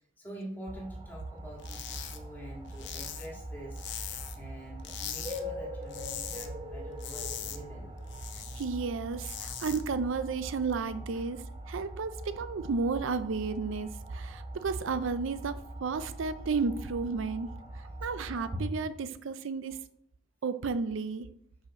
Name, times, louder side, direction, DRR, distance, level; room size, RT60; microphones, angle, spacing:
voice 1, 0.2-3.9 4.3-7.9 11.0-11.2, right 1 dB, 10° left, -2 dB, 2.0 m, -46 dB
sound 1, 0.7-18.7, equal, 25° right, 0.9 m, -42 dB
sound 2, 1.6-2.2 2.5-4.5 4.8-5.4 5.7-6.5 6.8-8.6 9.0-9.8, left 9 dB, 60° left, 0.8 m, -40 dB
voice 2, 8.3-19.8 20.4-21.3, right 4 dB, 70° right, 12 dB, 0.4 m, -33 dB
5.4 x 4.9 x 6.3 m, 0.68 s
head